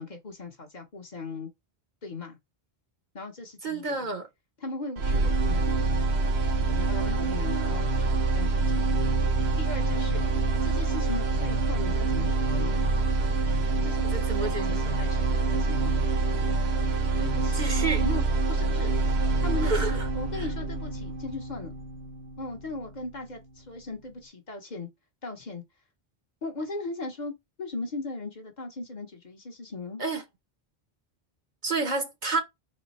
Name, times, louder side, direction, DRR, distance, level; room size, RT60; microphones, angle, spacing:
voice 1, 0.0-1.5 2.0-2.4 3.1-4.1 4.6-6.1 6.8-8.9 9.5-10.2 10.6-12.8 13.7-15.9 17.2-18.9 19.4-21.7 22.4-24.9 25.2-25.6 26.4-27.3 27.6-30.0, left 3 dB, 45° left, 1.1 m, -38 dB
voice 2, 3.6-4.3 14.1-14.8 17.5-18.0 19.6-20.1 20.4-20.5 30.0-30.2 31.6-32.4, right 3 dB, 50° right, 0.8 m, -29 dB
sound 1, 5.0-23.0, right 3 dB, 85° right, 1.1 m, -26 dB
4.3 x 2.2 x 4.1 m
omnidirectional pair, 1.0 m